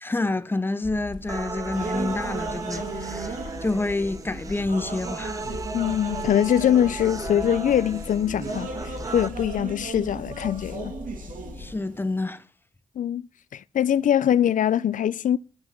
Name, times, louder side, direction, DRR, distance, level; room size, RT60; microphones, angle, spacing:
voice 1, 0.0-5.4 11.6-12.4, left 2 dB, 15° left, 0.7 m, -28 dB
sound 1, 0.8-11.8, left 4 dB, 55° left, 2.0 m, -41 dB
sound 2, 1.3-9.3, right 4 dB, 25° right, 0.6 m, -36 dB
sound 3, 1.7-12.2, right 3 dB, 80° right, 1.9 m, -37 dB
voice 2, 5.7-10.9 13.0-15.4, left 10 dB, 75° left, 0.5 m, -23 dB
12.5 x 6.1 x 6.0 m
wide cardioid pair, 100°, 14 cm